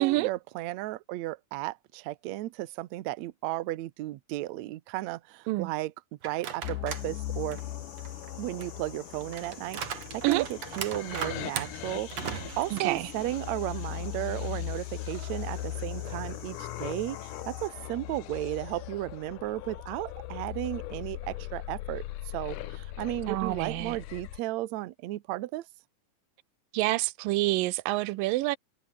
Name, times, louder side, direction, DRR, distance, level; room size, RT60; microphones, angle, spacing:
voice 1, 0.0-5.9 6.2-7.6 8.4-12.1 12.6-22.0 22.3-25.7, right 17 dB, 70° right, 1.9 m, -34 dB
sound 1, 6.2-7.1 7.5-13.6 14.0-14.1 15.1-16.5, right 8 dB, 50° right, 3.0 m, -40 dB
sound 2, 6.6-24.4, left 14 dB, 75° left, 2.5 m, -39 dB
sound 3, 6.9-17.7, left 4 dB, 35° left, 3.9 m, -51 dB
voice 2, 12.7-13.1 23.3-24.0 26.7-28.6, right 19 dB, 85° right, 2.4 m, -27 dB
omnidirectional pair, 3.9 m